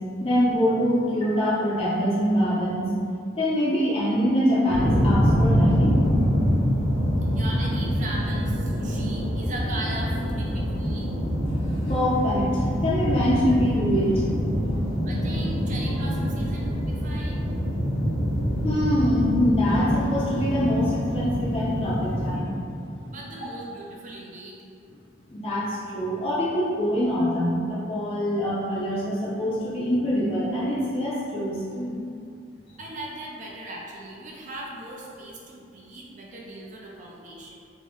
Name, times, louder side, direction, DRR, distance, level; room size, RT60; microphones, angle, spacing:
voice 1, 0.2-2.9 3.4-6.0 11.6-15.1 18.6-22.5 23.0-23.1 25.3-31.9, equal, 30° left, -8 dB, 0.5 m, -24 dB
sound 1, 4.7-22.4, equal, 85° right, 1.3 m, -25 dB
voice 2, 7.3-11.2 15.0-17.5 23.1-24.6 32.8-37.5, right 1 dB, 40° right, -3 dB, 0.4 m, -38 dB
3.6 x 2.1 x 3.5 m, 2.4 s
head